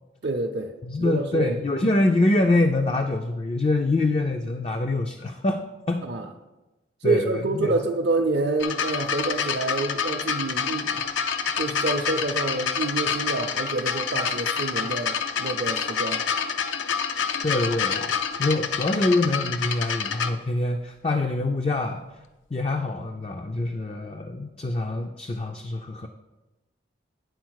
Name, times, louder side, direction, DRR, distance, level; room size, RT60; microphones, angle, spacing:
voice 1, 0.2-0.7 1.0-1.6 6.0-6.2 7.0-11.1 11.4-16.2, right 3 dB, 55° right, 1 dB, 0.5 m, -27 dB
voice 2, 0.8-6.1 7.0-7.8 17.4-18.1 18.4-22.0 22.5-26.1, left 2 dB, 30° left, 4 dB, 0.4 m, -25 dB
sound 1, 8.6-20.3 21.2-21.3, left 6 dB, 80° left, 0.6 m, -27 dB
9.4 x 4.2 x 6.3 m, 1.1 s
head